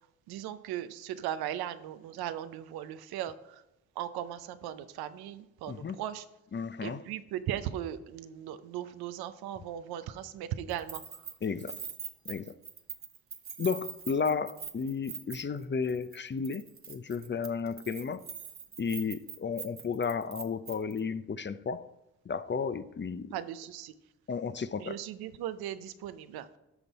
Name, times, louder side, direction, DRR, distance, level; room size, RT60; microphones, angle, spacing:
voice 1, 0.3-3.6 4.0-6.3 6.8-11.2 23.3-23.9 24.8-26.6, right 11 dB, 90° right, 12 dB, 0.6 m, -38 dB
voice 2, 5.7-6.0 6.5-7.0 11.4-11.8 12.3-12.6 13.6-18.2 18.8-21.9 22.3-23.3 24.3-25.0, left 5 dB, 30° left, 14 dB, 0.6 m, -33 dB
Keys jangling, 10.7-15.6 15.9-16.2 16.4-21.0, right 6 dB, 35° right, 1.1 m, -43 dB
13.0 x 5.4 x 4.1 m, 0.92 s
supercardioid pair, 55°, 36 cm